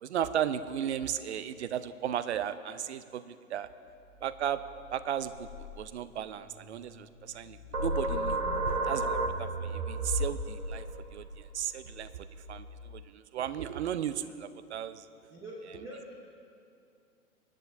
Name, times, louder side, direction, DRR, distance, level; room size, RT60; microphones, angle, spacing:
voice 1, 0.0-3.7 4.2-4.6 4.9-8.4 8.7-10.9 11.1-12.7 12.9-15.1, right 9 dB, 55° right, 14 dB, 0.6 m, -35 dB
sound 1, 3.9-9.1, left 5 dB, 35° left, 1.3 m, -52 dB
sound 2, 7.7-13.0, right 1 dB, 90° right, 1.0 m, -33 dB
voice 2, 15.3-16.1, right 1 dB, 5° right, -1 dB, 0.5 m, -44 dB
24.5 x 8.7 x 2.6 m, 2.5 s
figure-of-eight pair, 110°, 42 cm